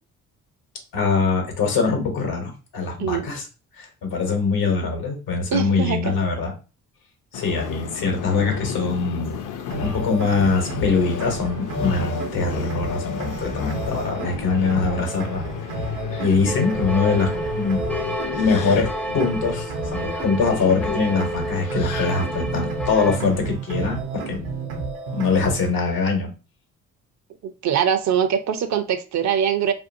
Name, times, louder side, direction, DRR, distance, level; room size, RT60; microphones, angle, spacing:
voice 1, 0.9-3.4 3.8-6.5 7.3-9.4 9.8-15.4 16.2-17.8 18.3-18.9 19.1-24.4 25.1-26.3, left 4 dB, 80° left, 1.0 m, -23 dB
voice 2, 5.5-6.1 16.3-16.4 27.6-29.7, right 8 dB, 50° right, 0.5 m, -22 dB
Subway metro underground, 7.3-22.6, left 8 dB, 60° left, 0.5 m, -35 dB
sound 1, 9.7-25.7, right 1 dB, 80° right, 0.8 m, -31 dB
sound 2, 16.5-23.2, right 1 dB, 5° left, 0.4 m, -31 dB
2.6 x 2.4 x 2.6 m
supercardioid pair, 55°, 36 cm